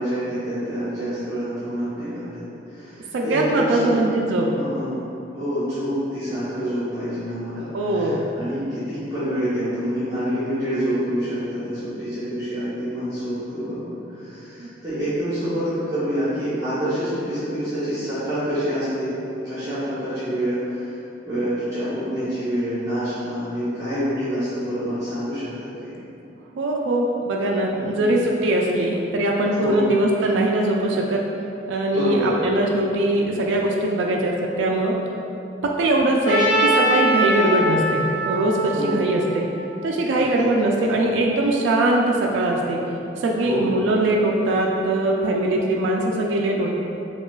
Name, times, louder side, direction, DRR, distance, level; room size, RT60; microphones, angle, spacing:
voice 1, 0.0-4.0 4.5-5.0 5.3-19.1 19.4-20.9 21.2-25.9 27.7-28.0 29.5-29.8 31.9-32.4 38.7-38.9 40.1-40.5 43.4-43.7, equal, 20° right, -14 dB, 1.1 m, -27 dB
voice 2, 3.1-4.5 7.7-8.2 14.6-14.7 26.6-31.2 31.7-34.9 35.6-39.5 39.8-42.8 43.2-46.8, right 1 dB, 85° right, -1 dB, 0.3 m, -21 dB
Trumpet, 36.2-40.3, right 1 dB, 65° left, 0.7 m, -23 dB
5.3 x 2.3 x 2.2 m, 2.9 s
head